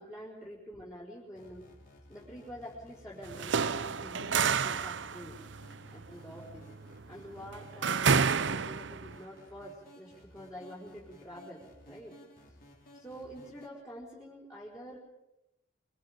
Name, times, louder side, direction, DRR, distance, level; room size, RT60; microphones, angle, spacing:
voice 1, 0.0-1.6 2.1-5.4 5.9-6.7 7.1-12.1 12.9-15.0, equal, 15° left, -6 dB, 4.7 m, -47 dB
sound 1, 1.3-13.7, left 1 dB, 45° left, 4.7 m, -56 dB
sound 2, 3.2-9.2, right 6 dB, 65° right, 0.7 m, -30 dB
25.5 x 25.5 x 5.3 m, 0.92 s
head